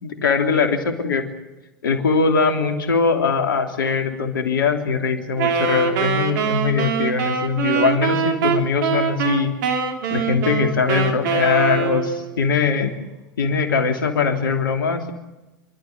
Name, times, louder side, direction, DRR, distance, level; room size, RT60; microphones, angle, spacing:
voice 1, 0.0-1.3 1.8-9.5 10.1-12.9 13.4-15.1, left 5 dB, 80° left, 5 dB, 3.1 m, -21 dB
Wind instrument woodwind instrument, 5.4-12.3, right 5 dB, 65° right, 3.0 m, -23 dB
29.0 x 13.0 x 9.6 m, 1.1 s
hypercardioid pair, 90°, 11 cm